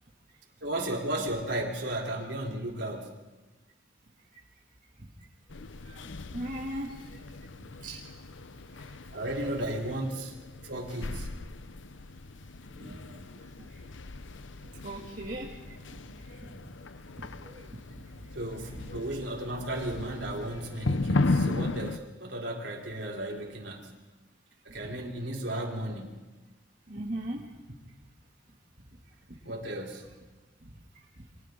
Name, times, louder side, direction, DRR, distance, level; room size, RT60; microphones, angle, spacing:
voice 1, 0.6-3.2 9.1-10.3 10.6-11.3 18.3-23.9 24.6-26.1 29.5-30.0, right 1 dB, 70° right, -1 dB, 3.9 m, -34 dB
sound 1, 5.5-22.0, left 2 dB, 90° left, 0.8 m, -36 dB
voice 2, 5.9-7.2 7.6-8.0 8.7-9.3 12.8-13.2 14.8-16.5 17.2-18.3 18.7-18.8 26.9-27.5 29.3-29.4, right 1 dB, 45° right, -3 dB, 2.6 m, -40 dB
29.5 x 24.5 x 3.9 m, 1.2 s
head